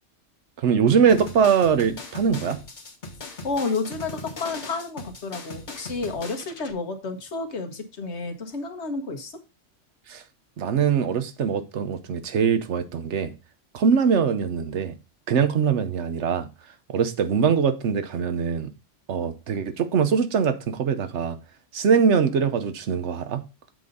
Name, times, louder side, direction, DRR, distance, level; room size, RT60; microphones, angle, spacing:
voice 1, 0.6-2.6 10.1-10.2 10.6-13.3 13.7-14.9 15.3-16.5 16.9-18.7 19.1-21.4 21.7-23.4, right 6 dB, 70° right, 1.1 m, -22 dB
sound 1, 1.1-6.7, left 3 dB, 40° left, 1.3 m, -39 dB
voice 2, 3.4-9.3, left 3 dB, 65° left, 1.5 m, -30 dB
7.7 x 4.0 x 5.3 m
omnidirectional pair, 1.2 m